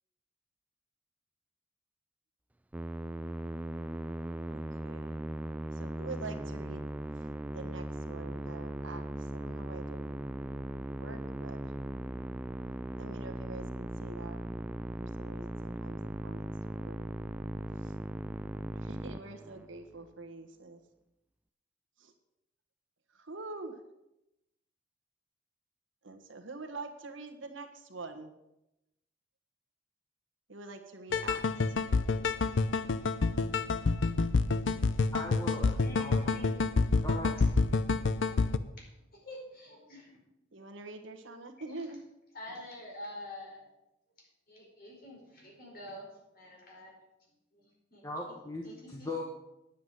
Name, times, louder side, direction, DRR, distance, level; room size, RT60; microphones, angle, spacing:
Musical instrument, 2.7-19.9, right 1 dB, 10° right, 0.3 m, -38 dB
voice 1, 4.5-5.1 5.7-6.8 7.5-9.0 9.3-10.1 11.0-11.7 13.0-14.4 15.0-16.0 16.2-17.0 17.8-17.9 18.8-20.8 22.0-22.1 23.2-23.7 26.0-28.3 30.5-31.4 40.5-42.0, right 3 dB, 80° right, 5 dB, 1.5 m, -45 dB
sound 1, 31.1-38.6, left 3 dB, 75° left, 0.6 m, -28 dB
voice 2, 35.1-36.3 37.0-37.4 48.0-49.2, left 2 dB, 20° left, -1 dB, 1.3 m, -39 dB
voice 3, 35.7-36.6 38.3-38.4 38.9-40.2 41.6-41.9 42.3-43.6 44.5-46.1 46.3-46.9 47.5-48.1 48.6-49.1, left 1 dB, 50° left, -1 dB, 4.9 m, -47 dB
9.9 x 8.3 x 7.5 m, 0.90 s
head